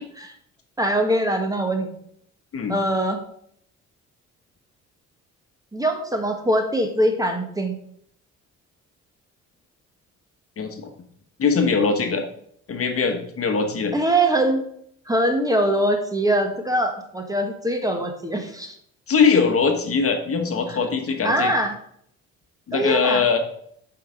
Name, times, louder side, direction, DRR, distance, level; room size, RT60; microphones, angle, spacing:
voice 1, 0.8-1.9 2.7-3.2 5.7-7.8 13.9-14.6 15.1-18.7 20.7-20.8 21.2-21.8 22.7-23.2, right 1 dB, 10° right, 5 dB, 1.4 m, -22 dB
voice 2, 10.6-10.9 11.4-12.3 12.7-13.9 19.1-21.5 22.7-23.4, left 5 dB, 50° left, 5 dB, 1.2 m, -21 dB
7.7 x 4.9 x 5.1 m, 0.67 s
cardioid pair, 90°, 30 cm